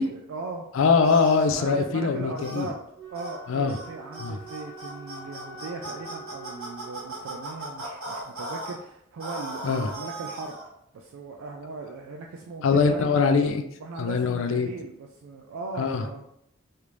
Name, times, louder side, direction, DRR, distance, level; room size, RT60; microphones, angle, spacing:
voice 1, 0.0-0.7 1.6-2.8 3.1-10.6 10.9-13.2 13.8-16.2, right 3 dB, 70° right, 1 dB, 0.3 m, -38 dB
voice 2, 0.7-2.7 3.5-3.8 4.2-4.4 9.6-9.9 12.6-13.6 14.0-14.7 15.7-16.0, left 5 dB, 65° left, 7 dB, 0.4 m, -22 dB
sound 1, 1.0-1.6 2.4-2.7 3.1-3.4 3.7-8.7 9.2-10.7, right 1 dB, 85° right, 1.3 m, -37 dB
Wind instrument woodwind instrument, 2.9-7.4, right 2 dB, 20° right, 0.7 m, -46 dB
3.3 x 2.5 x 3.0 m, 0.77 s
head